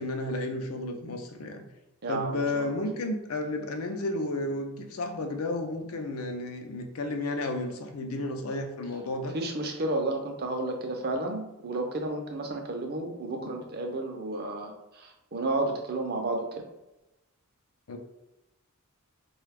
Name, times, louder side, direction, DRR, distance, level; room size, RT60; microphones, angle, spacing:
voice 1, 0.0-1.6 2.1-9.4 17.9-18.0, left 2 dB, 70° left, 5 dB, 0.5 m, -32 dB
voice 2, 2.0-2.7 9.3-16.7, right 2 dB, 45° right, 3 dB, 0.6 m, -32 dB
3.8 x 2.3 x 3.3 m, 0.94 s
head